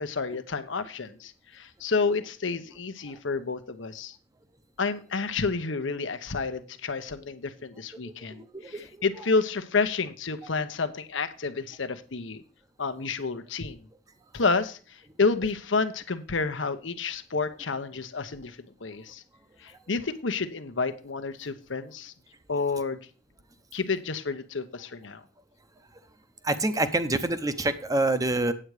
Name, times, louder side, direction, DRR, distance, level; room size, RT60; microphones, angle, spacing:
voice 1, 0.0-4.2 4.8-12.4 12.8-13.8 14.3-19.2 19.6-22.1 22.5-23.0 23.7-25.2, left 4 dB, 75° left, 10 dB, 0.9 m, -30 dB
voice 2, 8.0-8.8 26.4-28.5, right 2 dB, 20° right, 10 dB, 0.7 m, -27 dB
8.7 x 8.0 x 4.8 m, 0.38 s
head